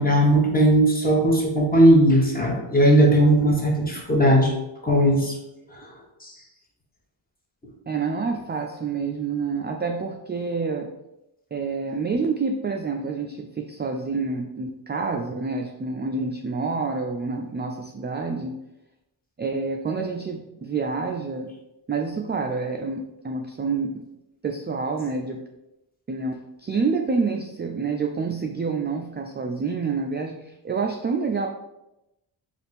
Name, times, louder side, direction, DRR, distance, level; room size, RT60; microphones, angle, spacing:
voice 1, 0.0-4.5 4.8-5.4 5.7-5.9 6.2-6.3, right 1 dB, 15° left, -1 dB, 1.2 m, -18 dB
voice 2, 7.9-10.9 11.5-18.6 19.4-21.5 21.9-24.1 24.4-25.4 26.1-31.5, right 4 dB, 25° right, 3 dB, 0.3 m, -28 dB
3.4 x 2.5 x 4.2 m, 0.92 s
cardioid pair, 50°, 50 cm